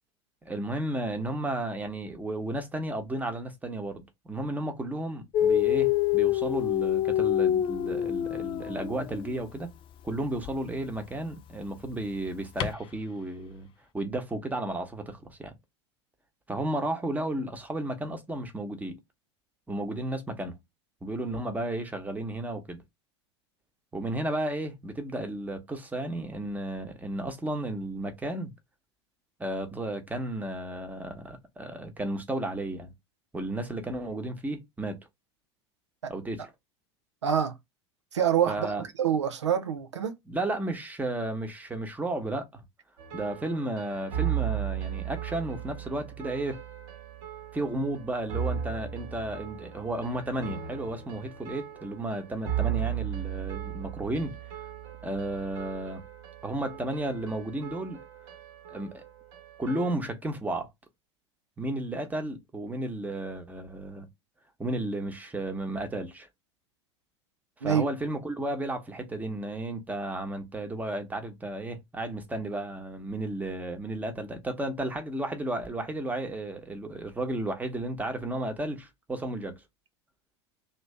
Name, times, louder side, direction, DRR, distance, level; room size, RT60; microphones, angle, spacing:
voice 1, 0.4-9.7 10.0-13.7 13.9-15.5 16.5-19.0 19.7-20.6 21.0-22.8 23.9-28.5 29.4-32.9 33.3-35.0 36.1-36.5 38.5-38.8 40.3-42.6 43.1-46.6 47.5-54.4 55.0-56.0 56.4-58.0 58.7-59.0 59.6-60.7 61.6-64.1 64.6-66.3 67.6-79.6, right 1 dB, 10° right, 1.0 m, -33 dB
Dog, 5.3-9.3 10.4-10.5 12.6-12.7, left 11 dB, 35° left, 0.4 m, -26 dB
voice 2, 37.2-37.6 38.1-40.2 67.6-67.9, right 8 dB, 85° right, 0.5 m, -26 dB
sound 1, 43.0-60.0, right 10 dB, 65° right, 1.2 m, -36 dB
3.0 x 2.7 x 3.3 m
hypercardioid pair, 85°, 15 cm